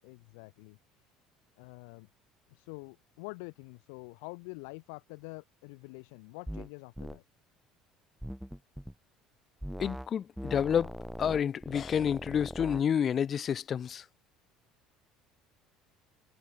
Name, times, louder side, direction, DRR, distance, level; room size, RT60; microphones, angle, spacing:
voice 1, 0.0-0.8 1.0-1.1 1.6-2.1 2.5-7.2, left 34 dB, 90° left, 6.9 m, -46 dB
sound 1, 6.5-6.7 7.0-7.2 8.2-8.9 9.6-10.1 10.4-12.8, equal, ahead, 1.8 m, -41 dB
voice 2, 9.8-10.9 11.2-14.0, left 8 dB, 35° left, 0.6 m, -29 dB
cardioid pair, 130°, 0 cm